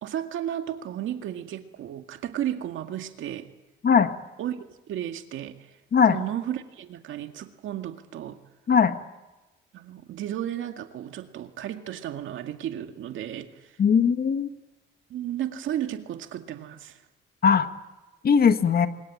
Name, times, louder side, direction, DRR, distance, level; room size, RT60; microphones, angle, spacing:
voice 1, 0.0-3.5 4.4-5.5 6.1-8.4 9.7-13.5 15.1-17.0, right 11 dB, 80° right, 7 dB, 2.0 m, -33 dB
voice 2, 13.8-14.5 17.4-17.7 18.2-18.9, left 6 dB, 50° left, 9 dB, 1.7 m, -19 dB
24.5 x 21.0 x 8.9 m, 1.1 s
cardioid pair, 90°, 20 cm